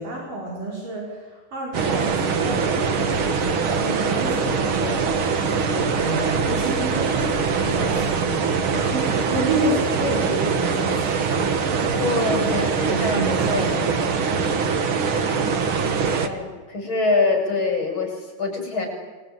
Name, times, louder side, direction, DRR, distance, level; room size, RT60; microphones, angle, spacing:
voice 1, 0.0-11.3 12.9-14.1, right 2 dB, 65° right, -2 dB, 6.5 m, -29 dB
sound 1, 1.7-16.3, right 5 dB, 50° right, 1.8 m, -23 dB
voice 2, 12.0-13.3 13.5-13.8 14.5-14.7 16.2-18.9, left 3 dB, 30° left, 2 dB, 7.4 m, -25 dB
27.0 x 23.0 x 9.6 m, 1.3 s
omnidirectional pair, 4.1 m